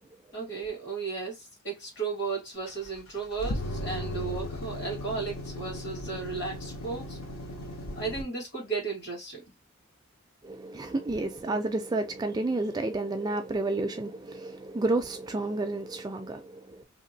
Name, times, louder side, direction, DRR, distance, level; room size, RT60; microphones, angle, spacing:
voice 1, 0.3-7.2 7.9-9.4, right 4 dB, 55° left, 1.7 m, -35 dB
sound 1, 2.7-8.2, left 1 dB, 80° left, 0.8 m, -36 dB
voice 2, 10.4-16.8, right 2 dB, 20° right, 0.3 m, -31 dB
2.9 x 2.5 x 2.6 m
head